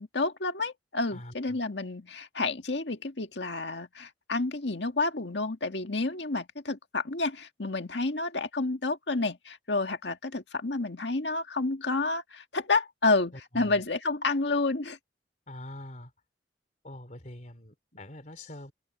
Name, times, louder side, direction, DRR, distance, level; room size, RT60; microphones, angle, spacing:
voice 1, 0.0-15.0, left 3 dB, 70° left, 1.8 m, -30 dB
voice 2, 1.1-1.6 13.3-13.8 15.5-16.1 16.8-18.7, left 1 dB, 45° left, 3.6 m, -44 dB
head